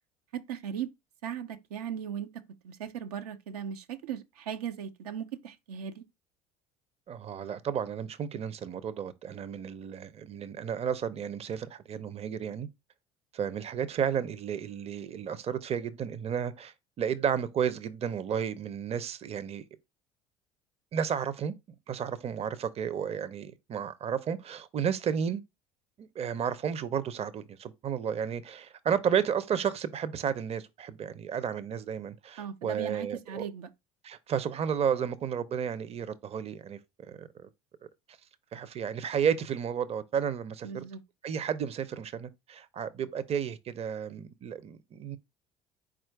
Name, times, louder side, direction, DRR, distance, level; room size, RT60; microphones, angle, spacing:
voice 1, 0.3-0.9 1.2-6.0 32.4-33.7 40.6-41.0, right 8 dB, 80° right, 0.5 m, -38 dB
voice 2, 7.1-12.7 13.3-19.6 20.9-21.5 21.9-25.4 26.0-33.5 34.0-36.8 37.1-37.5 38.5-40.8 41.2-45.2, right 8 dB, 35° right, 0.5 m, -32 dB
4.4 x 2.4 x 4.5 m
hypercardioid pair, 70°, 19 cm